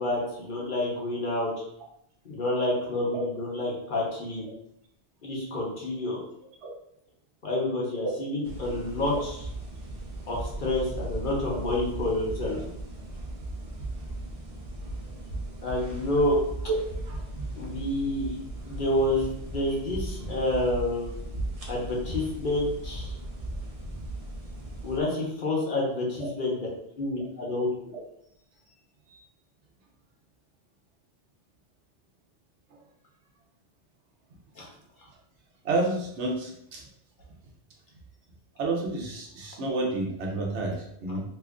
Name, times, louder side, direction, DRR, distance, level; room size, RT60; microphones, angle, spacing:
voice 1, 0.0-1.5 2.2-4.5 5.2-6.2 7.4-9.4 10.3-12.6 15.6-16.4 17.6-18.4 18.6-21.1 21.7-23.2 24.8-26.6 27.0-27.7 34.6-34.7, left 1 dB, 50° left, -3 dB, 1.0 m, -28 dB
sound 1, 8.4-25.0, right 1 dB, 40° right, 0.7 m, -37 dB
voice 2, 35.6-36.8 38.6-41.2, right 2 dB, 90° right, -1 dB, 1.1 m, -30 dB
3.0 x 2.4 x 3.5 m, 0.74 s
omnidirectional pair, 1.1 m